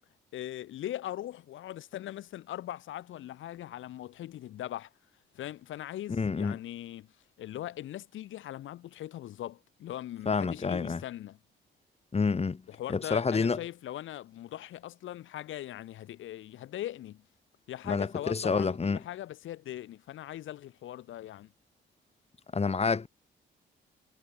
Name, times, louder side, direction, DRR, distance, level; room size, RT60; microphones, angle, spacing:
voice 1, 0.3-4.9 5.3-7.1 7.4-11.4 12.7-17.2 17.7-21.5, left 13 dB, 80° left, 3.4 m, -40 dB
voice 2, 6.1-6.6 10.3-11.0 12.1-12.6 12.9-13.6 17.8-19.0 22.5-23.1, left 4 dB, 30° left, 3.7 m, -28 dB
cardioid pair, 90°, 20 cm